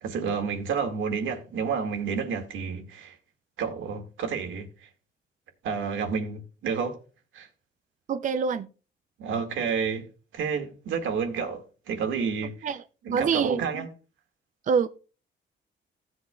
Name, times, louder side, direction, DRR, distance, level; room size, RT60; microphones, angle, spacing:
voice 1, 0.0-3.2 3.6-4.9 5.6-7.0 7.3-7.5 9.2-10.1 10.3-12.7 13.0-13.9, right 6 dB, 80° right, 1.9 m, -30 dB
voice 2, 8.1-8.7 12.6-12.8 13.1-13.9 14.7-14.9, right 6 dB, 40° right, 0.5 m, -25 dB
15.0 x 7.9 x 2.3 m
cardioid pair, 90°, 20 cm